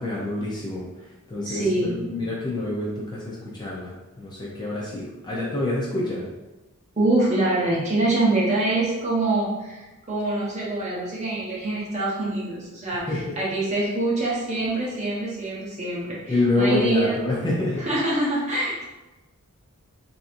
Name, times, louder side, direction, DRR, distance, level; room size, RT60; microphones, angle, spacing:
voice 1, 0.0-6.2 13.1-13.4 16.3-17.9, left 2 dB, 20° left, -5 dB, 0.5 m, -27 dB
voice 2, 1.4-2.0 7.0-17.2 17.8-18.8, right 2 dB, 30° right, -5 dB, 0.8 m, -25 dB
3.8 x 2.7 x 2.5 m, 1.1 s
head